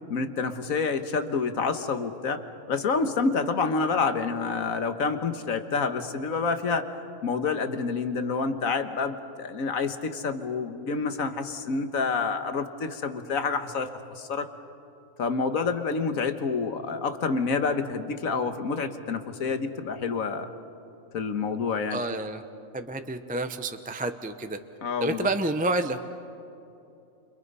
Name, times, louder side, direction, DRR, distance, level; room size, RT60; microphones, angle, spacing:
voice 1, 0.1-2.4 2.7-6.9 7.2-14.5 15.2-20.5 21.1-22.0 24.8-25.3, left 4 dB, 90° left, 8 dB, 1.7 m, -28 dB
voice 2, 21.9-22.4 22.7-24.6 25.0-26.0, right 2 dB, 10° right, 8 dB, 0.7 m, -29 dB
30.0 x 29.0 x 5.5 m, 2.8 s
omnidirectional pair, 1.4 m